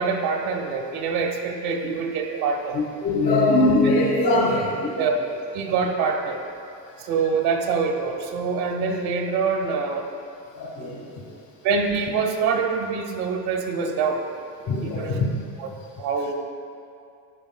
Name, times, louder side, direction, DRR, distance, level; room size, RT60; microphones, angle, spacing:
voice 1, 0.0-2.8 5.0-5.1 5.5-6.4 7.0-10.1 11.6-14.2 14.8-15.2 16.0-16.3, right 5 dB, 70° right, 2 dB, 1.3 m, -25 dB
voice 2, 2.7-4.9 10.5-11.4 14.6-15.3, left 2 dB, 50° left, -5 dB, 1.5 m, -22 dB
11.5 x 9.3 x 2.3 m, 2.6 s
cardioid pair, 150°, 39 cm